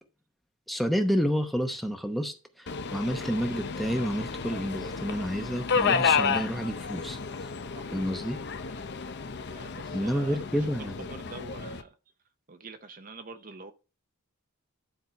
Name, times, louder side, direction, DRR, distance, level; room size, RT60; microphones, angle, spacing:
voice 1, 0.7-7.5 7.9-8.4 9.9-11.1, equal, ahead, 0.8 m, -30 dB
Subway metro underground, 2.7-11.8, left 5 dB, 50° left, 0.6 m, -31 dB
voice 2, 9.5-10.4 11.1-11.9 12.5-13.7, right 3 dB, 40° right, 0.7 m, -46 dB
10.5 x 4.5 x 4.5 m
head